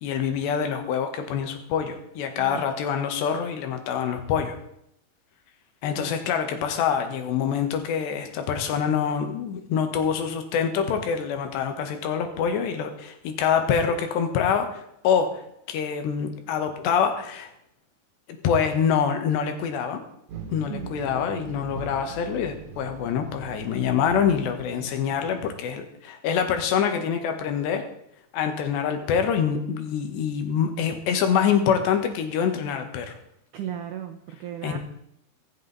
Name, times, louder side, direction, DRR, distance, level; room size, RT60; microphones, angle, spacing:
voice 1, 0.0-4.6 5.8-15.4 15.7-17.5 18.4-20.0 20.5-27.9 28.3-33.2 34.6-34.8, left 7 dB, 80° left, 6 dB, 3.6 m, -25 dB
sound 1, 20.3-25.5, right 3 dB, 55° right, 2.6 m, -40 dB
voice 2, 20.7-21.0 33.5-34.8, right 10 dB, 85° right, 6 dB, 1.7 m, -36 dB
24.0 x 8.0 x 4.1 m, 0.75 s
omnidirectional pair, 4.9 m